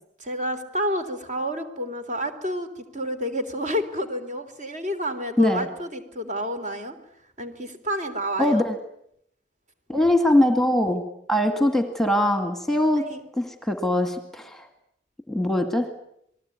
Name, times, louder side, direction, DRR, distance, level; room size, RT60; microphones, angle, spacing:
voice 1, 0.2-7.0 7.4-8.6 13.1-13.2, equal, 40° right, 8 dB, 3.5 m, -29 dB
voice 2, 8.4-8.8 9.9-11.0 11.3-14.7 15.3-15.9, left 1 dB, ahead, 7 dB, 2.0 m, -22 dB
29.0 x 20.0 x 9.4 m, 0.73 s
head